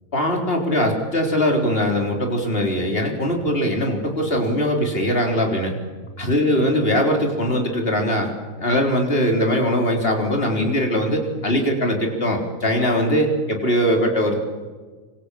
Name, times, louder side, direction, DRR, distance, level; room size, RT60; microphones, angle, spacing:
voice 1, 0.1-5.7 6.2-8.3 8.6-14.4, equal, 40° left, 2 dB, 4.2 m, -21 dB
28.5 x 25.0 x 8.4 m, 1.4 s
omnidirectional pair, 1.6 m